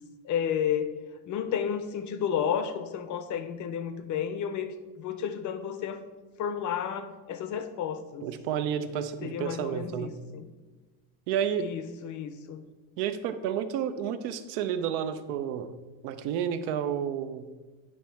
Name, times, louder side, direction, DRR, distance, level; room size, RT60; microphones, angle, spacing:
voice 1, 0.2-0.9 1.3-6.0 6.4-8.3 9.2-10.5 11.6-12.6, left 8 dB, 40° left, 10 dB, 0.5 m, -32 dB
voice 2, 8.2-10.2 11.3-11.7 13.0-15.7 16.0-17.5, right 8 dB, 90° right, 10 dB, 0.7 m, -31 dB
8.8 x 3.1 x 4.4 m, 1.3 s
cardioid pair, 130°, 48 cm